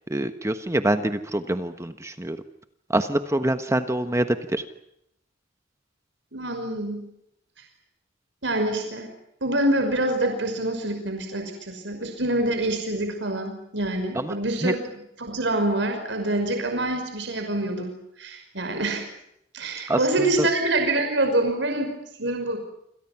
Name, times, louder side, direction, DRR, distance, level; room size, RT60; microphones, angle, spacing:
voice 1, 0.1-2.4 2.9-4.6 14.1-14.3 14.6-14.7 19.9-20.0 20.4-20.5, right 1 dB, 15° right, 8 dB, 1.3 m, -25 dB
voice 2, 6.3-7.0 8.4-9.1 9.4-14.8 15.2-19.0 19.5-21.9 22.2-22.6, right 1 dB, 80° right, 5 dB, 5.8 m, -26 dB
28.5 x 27.0 x 6.0 m, 0.78 s
head